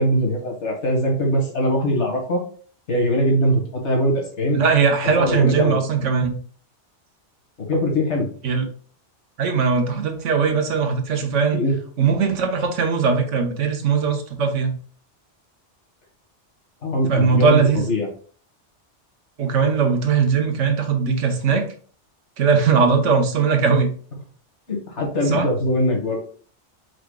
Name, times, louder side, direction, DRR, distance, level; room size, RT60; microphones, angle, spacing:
voice 1, 0.0-2.4 2.9-4.6 5.1-5.8 7.7-8.3 11.5-11.8 16.8-18.1 24.7-26.2, equal, 75° left, 1 dB, 1.8 m, -21 dB
voice 2, 4.5-6.4 8.4-8.6 9.4-11.6 12.0-14.8 17.1-17.9 19.4-21.7 22.4-23.9 25.3-25.5, right 5 dB, 85° right, 5 dB, 1.2 m, -19 dB
4.9 x 4.8 x 2.2 m, 0.44 s
omnidirectional pair, 1.2 m